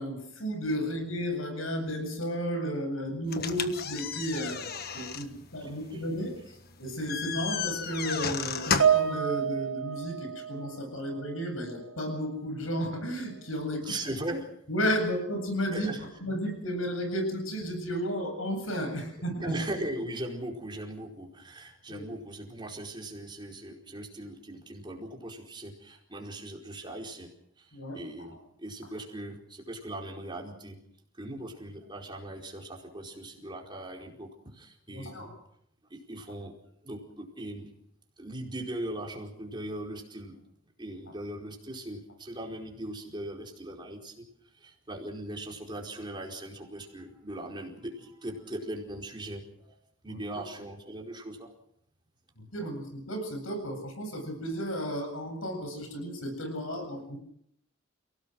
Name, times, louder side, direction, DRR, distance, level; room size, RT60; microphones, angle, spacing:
voice 1, 0.0-13.9 14.7-19.6 21.9-22.0 27.7-28.4 34.9-35.3 50.1-50.4 52.4-57.2, equal, 90° left, 6 dB, 7.9 m, -33 dB
sound 1, 3.3-9.1, left 6 dB, 50° left, 1.5 m, -34 dB
Piano, 8.8-11.4 11.7-12.0 12.8-12.9, right 8 dB, 85° right, 1.5 m, -29 dB
voice 2, 13.7-14.5 15.7-16.0 19.4-27.3 27.6-27.7 27.9-30.8 31.2-35.3 35.9-36.5 36.8-37.7 38.2-40.3 40.8-44.2 44.6-49.7 50.0-51.5 52.6-52.7, right 1 dB, 25° right, 1 dB, 4.6 m, -39 dB
29.5 x 18.0 x 6.3 m, 0.72 s
head